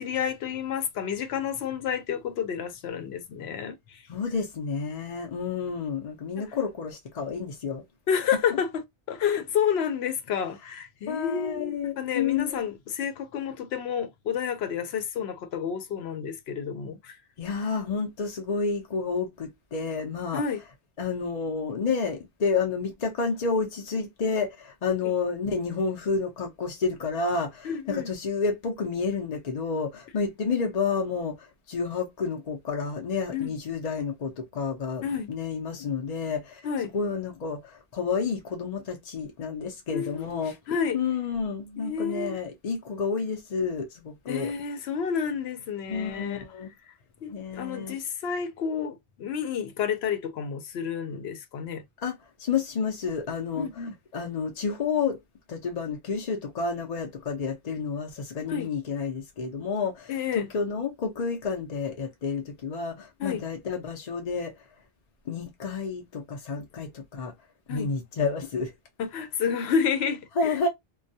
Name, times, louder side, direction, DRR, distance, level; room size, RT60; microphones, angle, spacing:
voice 1, 0.0-4.0 6.4-6.5 8.1-8.8 9.1-17.2 20.3-20.6 27.6-28.1 33.3-33.5 35.0-35.3 36.6-36.9 39.9-40.4 40.7-41.0 41.8-42.3 44.3-46.4 47.2-51.8 53.6-53.9 58.5-58.7 60.1-60.5 63.2-63.4 67.7-67.9 69.0-70.6, left 7 dB, 80° left, 0.8 m, -30 dB
voice 2, 4.1-7.8 8.5-8.6 11.1-12.6 17.4-20.4 21.0-36.6 36.9-40.6 40.9-44.5 45.9-46.7 47.3-48.0 52.0-55.2 55.5-64.5 65.3-67.3 67.7-68.7 70.4-70.7, left 5 dB, 50° left, 0.6 m, -30 dB
2.2 x 2.2 x 2.6 m
omnidirectional pair, 1.1 m